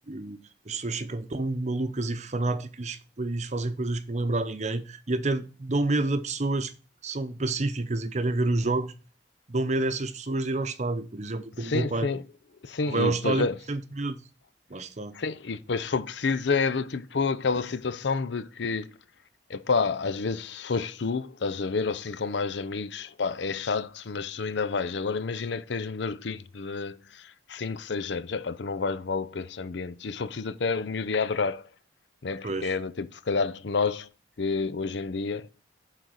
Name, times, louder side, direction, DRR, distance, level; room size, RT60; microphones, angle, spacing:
voice 1, 0.1-0.4 0.7-6.7 7.0-8.9 9.5-12.1 12.9-14.2 14.7-15.1 32.4-32.7, right 2 dB, 40° right, 0.8 m, -29 dB
voice 2, 11.6-12.2 12.6-13.6 15.1-18.9 19.5-31.7 32.2-34.1 34.4-35.5, left 4 dB, 65° left, 0.6 m, -29 dB
9.0 x 4.1 x 6.3 m
head